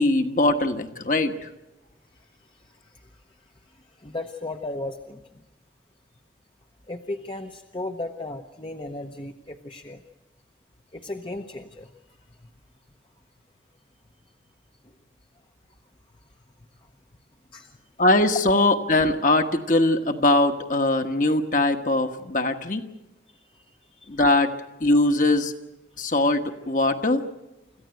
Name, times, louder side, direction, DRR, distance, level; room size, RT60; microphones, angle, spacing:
voice 1, 0.0-1.5 18.0-22.8 24.1-24.5 24.8-25.5 26.0-27.3, left 2 dB, 45° left, 6 dB, 1.3 m, -21 dB
voice 2, 2.5-3.1 4.0-5.2 6.9-10.0 10.9-11.9 17.5-17.7 23.5-23.7 23.9-24.1, left 2 dB, 30° left, 4 dB, 0.8 m, -35 dB
26.5 x 14.5 x 9.0 m, 0.99 s
head